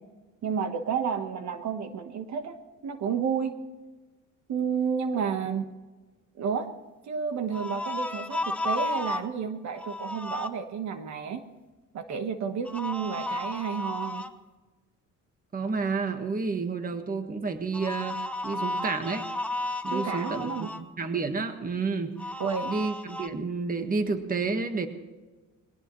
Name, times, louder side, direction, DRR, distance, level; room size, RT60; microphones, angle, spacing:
voice 1, 0.4-2.6 2.8-3.5 4.5-5.7 6.4-6.7 7.1-11.4 11.9-14.2 19.9-20.7 22.4-22.7, right 6 dB, 60° right, 8 dB, 1.3 m, -31 dB
sound 1, 7.5-9.3 9.8-10.5 12.7-14.3 17.7-20.8 22.2-23.3, left 2 dB, 5° left, 0.9 m, -33 dB
voice 2, 15.5-19.3 19.8-22.2 22.6-24.9, right 4 dB, 25° right, 7 dB, 1.5 m, -30 dB
22.0 x 17.5 x 3.2 m, 1.2 s
cardioid pair, 120°, 31 cm